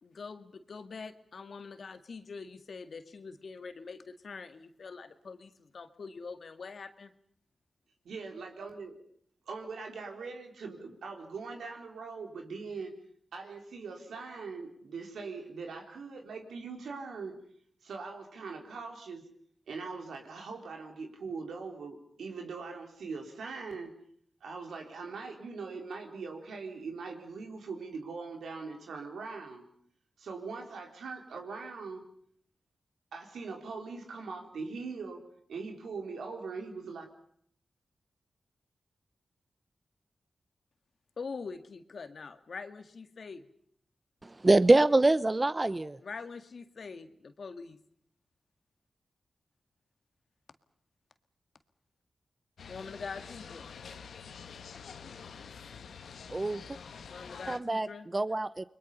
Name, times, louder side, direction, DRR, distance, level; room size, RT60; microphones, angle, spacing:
voice 1, 0.0-7.1 41.2-43.5 46.0-47.8 52.7-53.7 57.1-58.1, left 4 dB, 70° left, 9 dB, 2.0 m, -44 dB
voice 2, 8.0-9.0 9.5-12.9 13.3-17.3 17.8-19.2 19.7-23.9 24.4-29.6 30.2-32.0 33.1-35.2 35.5-37.1, right 4 dB, 90° right, 3 dB, 3.9 m, -41 dB
voice 3, 44.4-46.0 56.3-56.6 57.5-57.9 58.1-58.7, right 2 dB, 30° right, 15 dB, 0.9 m, -24 dB
sound 1, 52.6-57.6, left 6 dB, 85° left, 1.3 m, -47 dB
30.0 x 21.5 x 5.6 m, 0.64 s
cardioid pair, 50°, 0 cm